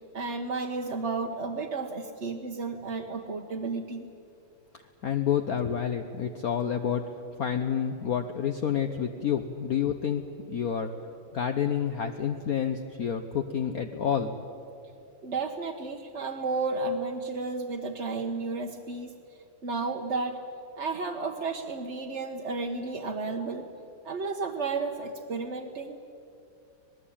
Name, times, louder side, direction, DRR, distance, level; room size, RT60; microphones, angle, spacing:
voice 1, 0.0-4.1 15.2-20.4 20.8-23.7 24.0-26.0, right 3 dB, 40° right, 1 dB, 1.2 m, -32 dB
voice 2, 5.0-7.1 7.4-10.2 10.5-10.9 11.3-14.4, left 8 dB, 55° left, 6 dB, 1.3 m, -29 dB
26.5 x 19.5 x 8.7 m, 2.6 s
omnidirectional pair, 2.2 m